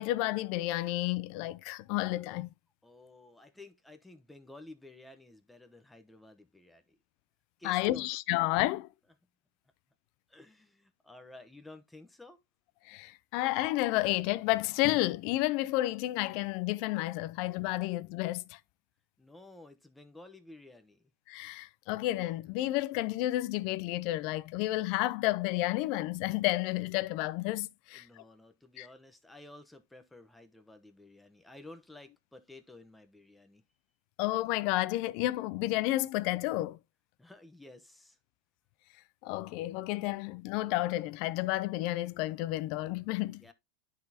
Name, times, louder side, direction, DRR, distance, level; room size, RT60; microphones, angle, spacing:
voice 1, 0.0-2.5 7.6-8.9 12.8-18.6 21.3-28.2 28.8-28.9 34.2-36.8 39.2-43.4, left 17 dB, 55° left, 0.4 m, -31 dB
voice 2, 2.8-7.0 7.6-8.2 10.3-12.4 19.2-21.1 27.9-33.6 37.2-38.2 43.4-43.5, left 2 dB, 5° left, 0.8 m, -53 dB
10.0 x 4.1 x 2.8 m
supercardioid pair, 125°, 0 cm